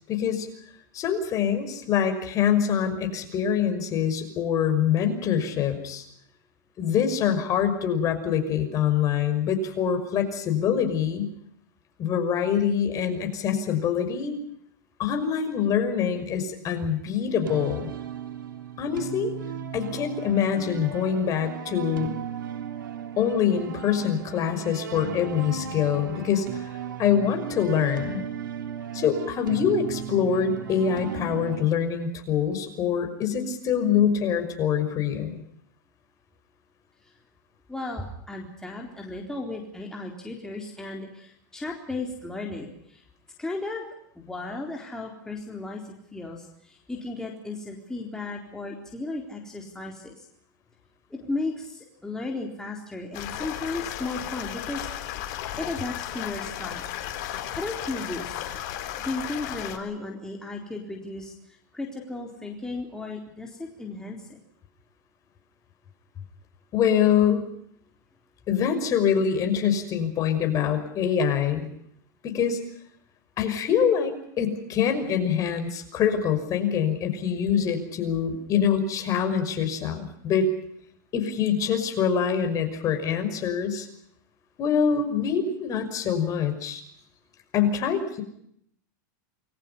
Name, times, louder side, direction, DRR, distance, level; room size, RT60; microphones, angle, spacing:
voice 1, 0.1-0.5 0.9-6.0 6.8-11.3 12.0-14.4 15.0-17.9 18.8-19.3 19.7-22.1 23.2-26.5 27.0-28.2 28.9-35.4 66.7-67.5 68.5-71.7 72.2-72.6 73.4-80.5 81.1-83.9 84.6-86.8 87.5-88.2, left 8 dB, 35° left, 7 dB, 5.8 m, -25 dB
sound 1, 17.4-31.6, right 7 dB, 90° right, 3.5 m, -36 dB
voice 2, 37.7-43.0 43.4-43.9 44.2-45.8 46.1-50.3 51.1-54.9 55.6-56.9 57.5-58.4 59.0-64.4, left 2 dB, 5° left, 0 dB, 4.0 m, -35 dB
sound 2, 53.1-59.8, left 11 dB, 50° left, 4.2 m, -34 dB
29.0 x 22.0 x 5.6 m, 0.70 s
supercardioid pair, 135°, 10 cm